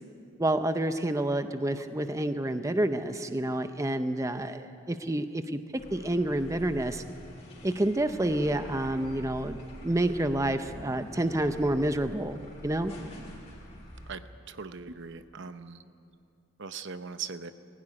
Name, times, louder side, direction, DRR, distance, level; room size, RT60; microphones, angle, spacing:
voice 1, 0.4-5.6 5.9-7.0 7.6-12.9, right 1 dB, 15° right, 9 dB, 0.6 m, -29 dB
sound 1, 5.8-14.1, equal, 30° left, 4.6 m, -46 dB
voice 2, 14.1-15.8 16.6-17.5, right 5 dB, 55° right, 11 dB, 0.8 m, -40 dB
19.5 x 16.0 x 9.9 m, 2.5 s
head